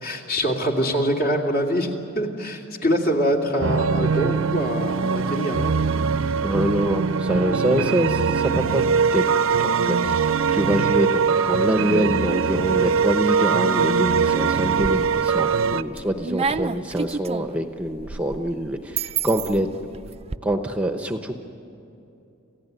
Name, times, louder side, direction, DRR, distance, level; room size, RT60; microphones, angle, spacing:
voice 1, 0.0-5.7, equal, 50° left, 1 dB, 2.7 m, -24 dB
sound 1, 3.6-15.8, right 5 dB, 65° right, 0.7 m, -22 dB
voice 2, 6.4-8.8 9.1-19.7 20.4-21.4, right 1 dB, 5° right, 5 dB, 0.9 m, -25 dB
sound 2, 14.6-15.3 15.7-20.4, right 5 dB, 30° right, 0.5 m, -30 dB
28.5 x 15.5 x 9.4 m, 2.8 s
head